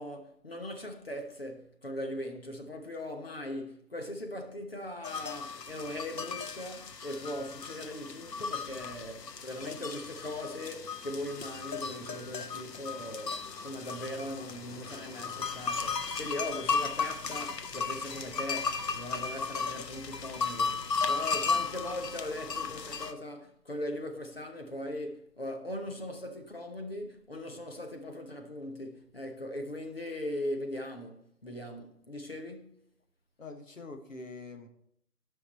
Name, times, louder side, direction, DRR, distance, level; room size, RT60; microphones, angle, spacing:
voice 1, 0.0-32.7, left 1 dB, 35° left, 1.0 m, -39 dB
sound 1, 5.0-23.1, left 5 dB, 85° left, 1.1 m, -35 dB
voice 2, 33.4-34.7, left 3 dB, 55° left, 1.5 m, -44 dB
11.5 x 5.8 x 4.1 m
hypercardioid pair, 180°, 48 cm